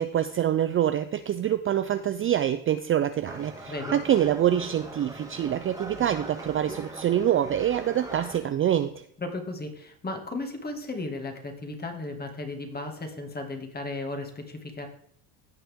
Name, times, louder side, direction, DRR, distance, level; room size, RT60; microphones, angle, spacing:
voice 1, 0.0-9.0, right 10 dB, 30° right, 10 dB, 0.4 m, -25 dB
sound 1, 3.2-8.4, right 2 dB, 10° right, 1.6 m, -41 dB
voice 2, 9.2-14.9, left 2 dB, 20° left, 4 dB, 2.1 m, -35 dB
16.0 x 5.7 x 3.6 m, 0.64 s
cardioid pair, 105°, 42 cm